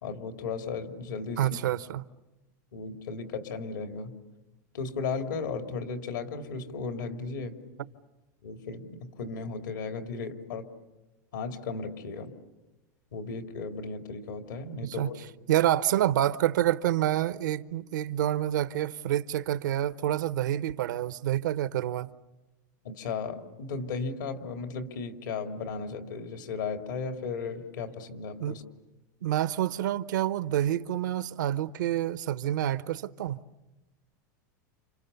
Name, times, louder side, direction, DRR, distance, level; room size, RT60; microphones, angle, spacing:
voice 1, 0.0-1.6 2.7-4.2 4.7-7.6 8.4-10.7 11.3-12.3 13.1-15.1 22.8-28.6, left 4 dB, 90° left, 2.9 m, -35 dB
voice 2, 1.4-2.0 14.8-15.1 15.5-22.1 28.4-28.6 29.2-33.4, right 12 dB, 85° right, 0.9 m, -28 dB
30.0 x 28.0 x 7.0 m
supercardioid pair, 120°, 10 cm